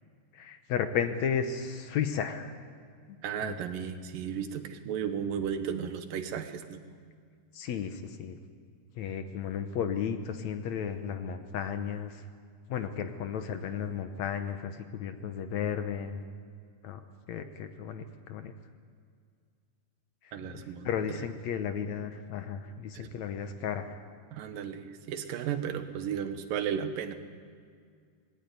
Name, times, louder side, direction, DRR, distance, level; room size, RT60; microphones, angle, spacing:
voice 1, 0.3-2.5 3.1-3.6 7.5-8.4 9.0-12.2 12.7-16.2 16.8-17.0 17.3-18.5 20.2-24.0, left 7 dB, 65° left, 8 dB, 2.1 m, -34 dB
voice 2, 3.2-6.8 20.3-20.9 21.1-21.2 22.9-23.1 24.3-27.1, right 8 dB, 85° right, 8 dB, 2.9 m, -34 dB
19.5 x 17.5 x 9.4 m, 2.1 s
omnidirectional pair, 3.8 m